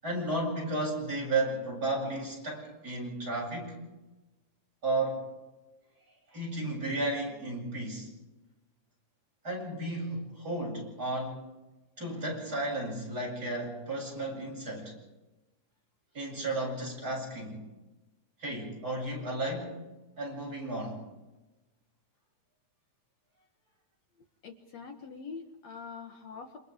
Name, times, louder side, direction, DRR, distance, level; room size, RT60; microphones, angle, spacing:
voice 1, 0.0-3.8 4.8-5.2 6.3-8.1 9.4-11.4 12.0-14.9 16.1-17.6 18.4-19.8 20.2-21.0, right 2 dB, 30° right, -2 dB, 8.7 m, -33 dB
voice 2, 24.4-26.6, left 5 dB, 65° left, 4 dB, 2.5 m, -44 dB
28.5 x 28.0 x 3.7 m, 1.1 s
omnidirectional pair, 3.4 m